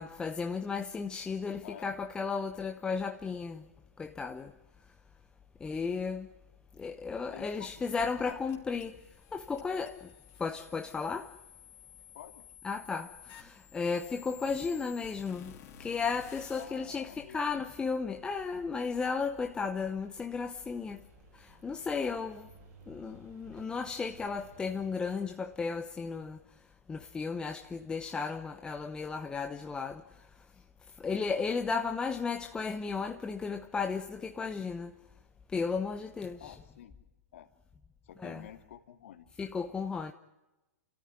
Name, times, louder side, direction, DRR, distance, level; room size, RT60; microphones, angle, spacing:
voice 1, 0.0-3.6 4.0-4.5 5.6-6.3 6.8-8.9 9.3-10.0 10.4-11.3 12.6-15.5 15.8-21.0 21.6-22.5 22.9-26.4 26.9-30.0 31.0-34.9 35.5-36.6 38.2-38.5 39.4-40.1, left 5 dB, 10° left, 0.9 m, -34 dB
voice 2, 1.6-1.9 7.3-8.4 12.1-12.4 16.5-17.7 31.4-31.5 36.4-36.9 37.3-37.5 38.0-39.3, left 11 dB, 55° left, 2.3 m, -49 dB
sound 1, 8.5-16.7, left 10 dB, 35° left, 3.1 m, -54 dB
sound 2, 13.8-25.2, right 4 dB, 35° right, 4.8 m, -59 dB
29.5 x 13.5 x 10.0 m
figure-of-eight pair, 120°, 8 cm